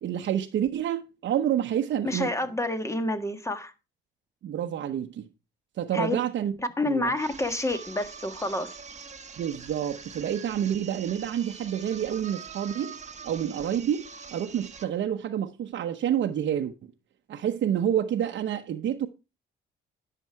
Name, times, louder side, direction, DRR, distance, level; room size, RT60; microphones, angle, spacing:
voice 1, 0.0-2.3 4.4-5.3 5.8-6.6 6.9-7.1 9.4-13.0 13.2-16.7 17.3-19.1, right 10 dB, 65° right, 0.9 m, -28 dB
voice 2, 2.0-3.7 5.9-6.1 6.8-8.7, left 2 dB, 15° left, 1.5 m, -28 dB
sound 1, 7.1-15.0, right 6 dB, 35° right, 1.2 m, -44 dB
10.5 x 6.9 x 4.6 m
cardioid pair, 90°, 20 cm